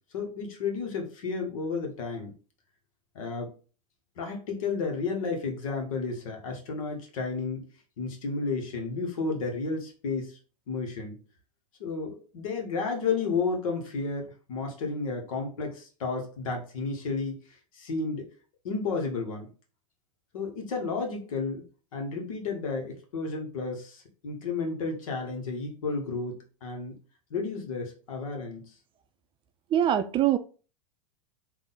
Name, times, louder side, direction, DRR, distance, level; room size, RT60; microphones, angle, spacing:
voice 1, 0.1-2.3 3.1-3.5 4.2-7.7 8.0-10.4 10.7-11.2 11.8-17.3 17.7-18.3 18.6-19.5 20.3-21.6 21.9-27.0 27.3-28.7, left 4 dB, 75° left, 3 dB, 1.4 m, -32 dB
voice 2, 29.7-30.4, right 11 dB, 30° right, 10 dB, 0.4 m, -23 dB
3.7 x 2.7 x 4.1 m, 0.36 s
hypercardioid pair, 110°, 18 cm